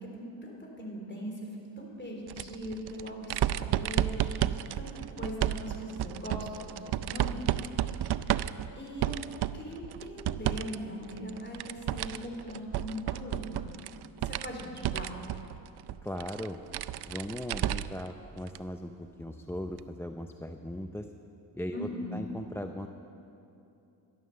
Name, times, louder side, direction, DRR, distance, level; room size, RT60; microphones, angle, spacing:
voice 1, 0.1-1.3 1.8-4.3 4.8-4.9 5.2-7.5 8.0-9.1 9.5-13.8 14.2-15.1 21.7-22.2, equal, 25° left, -1 dB, 3.6 m, -40 dB
sound 1, 2.3-10.8 11.1-18.1 18.5-18.6 19.8-19.9, right 12 dB, 60° right, 0.5 m, -32 dB
voice 2, 16.0-16.6 17.1-21.1 21.5-22.9, left 1 dB, 5° left, 5 dB, 0.5 m, -38 dB
12.5 x 11.5 x 6.7 m, 2.7 s
cardioid pair, 70°, 45 cm